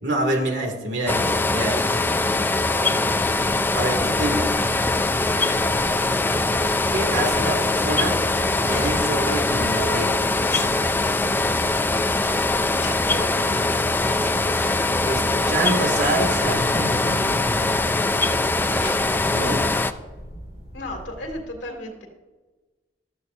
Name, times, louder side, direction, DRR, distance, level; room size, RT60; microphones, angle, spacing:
voice 1, 0.0-1.8 3.7-4.4 6.9-8.1 8.7-10.3 15.0-17.7 18.7-19.7, right 1 dB, 80° right, 1 dB, 2.4 m, -26 dB
sound 1, 1.1-19.9, left 2 dB, 10° left, 0.4 m, -22 dB
sound 2, 3.1-21.4, equal, 40° right, 2.6 m, -43 dB
sound 3, 5.4-5.7 6.2-6.6 6.9-7.7 8.5-9.0 9.4-9.5 9.8-10.0 10.4-11.0 11.5-11.9 12.3-13.3 14.1-14.7 15.0-15.1 15.9-16.7 17.5-17.9 18.3-19.1, left 3 dB, 40° left, 4.4 m, -38 dB
voice 2, 20.7-22.1, left 1 dB, 85° left, 2 dB, 2.4 m, -34 dB
15.0 x 13.0 x 2.7 m, 1.2 s
head